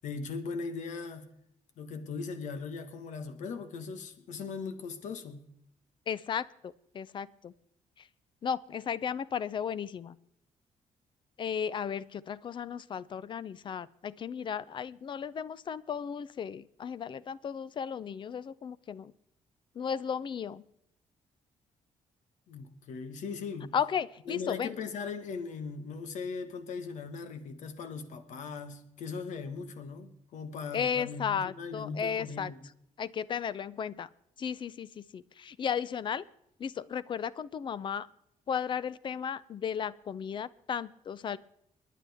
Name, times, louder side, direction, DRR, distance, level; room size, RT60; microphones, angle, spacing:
voice 1, 0.0-1.3 1.8-5.5 22.5-23.8 24.3-32.6, left 5 dB, 80° left, 10 dB, 1.4 m, -39 dB
voice 2, 6.1-7.5 8.4-10.2 11.4-19.1 19.8-20.6 23.7-24.8 30.7-32.5 33.0-34.1 34.4-36.2 36.6-38.1 38.5-41.4, left 7 dB, 40° left, 19 dB, 0.5 m, -35 dB
29.5 x 10.0 x 3.5 m, 0.79 s
cardioid pair, 155°, 12 cm